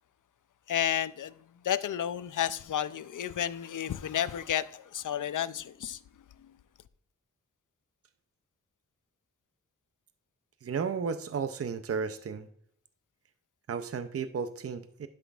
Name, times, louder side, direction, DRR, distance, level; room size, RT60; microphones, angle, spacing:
voice 1, 0.7-6.0 6.4-6.5, left 10 dB, 80° left, 0.5 m, -32 dB
voice 2, 10.6-12.5 13.7-15.1, right 5 dB, 50° right, 0.5 m, -33 dB
11.5 x 6.0 x 2.4 m
wide cardioid pair, 95°, 31 cm